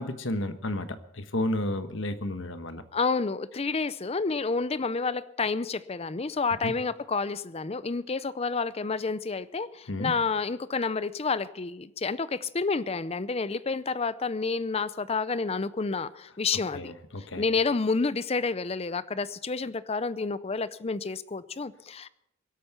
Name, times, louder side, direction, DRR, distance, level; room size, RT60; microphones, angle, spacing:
voice 1, 0.0-2.8 6.6-6.7 9.9-10.1 16.7-17.4, left 1 dB, 65° left, 9 dB, 1.3 m, -32 dB
voice 2, 2.9-16.9 17.4-22.1, left 4 dB, 30° left, 16 dB, 0.5 m, -29 dB
23.0 x 8.4 x 5.8 m, 0.81 s
head